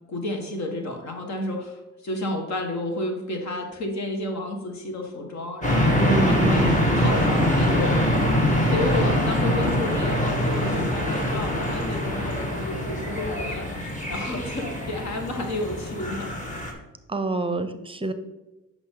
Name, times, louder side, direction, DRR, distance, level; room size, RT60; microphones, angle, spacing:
voice 1, 0.1-7.9 8.6-16.3, left 2 dB, 65° left, 3 dB, 1.8 m, -31 dB
sound 1, 5.6-16.7, left 1 dB, 25° left, 2.1 m, -24 dB
voice 2, 6.0-6.8 17.1-18.1, right 3 dB, 20° right, 10 dB, 0.7 m, -26 dB
8.7 x 6.1 x 3.9 m, 1.1 s
cardioid pair, 90°, 30 cm